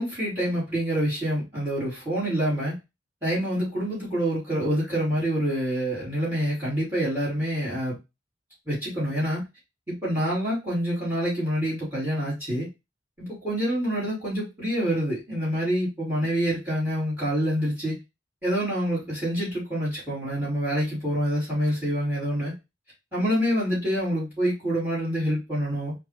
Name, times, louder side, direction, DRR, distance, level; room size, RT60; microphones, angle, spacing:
voice 1, 0.0-2.7 3.2-8.0 8.7-9.4 9.9-12.7 13.2-18.0 18.4-22.5 23.1-26.0, equal, 10° right, -7 dB, 2.6 m, -26 dB
4.4 x 2.6 x 3.2 m, 0.24 s
head